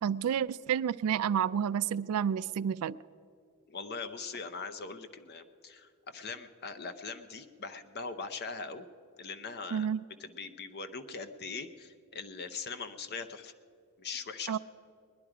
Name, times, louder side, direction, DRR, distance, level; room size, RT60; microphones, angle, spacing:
voice 1, 0.0-3.0 9.7-10.0 14.5-14.6, right 8 dB, 80° right, 15 dB, 0.3 m, -30 dB
voice 2, 3.7-8.9 9.2-9.9 10.2-13.5 14.0-14.6, left 4 dB, 50° left, 10 dB, 0.7 m, -41 dB
20.5 x 10.5 x 4.9 m, 2.3 s
head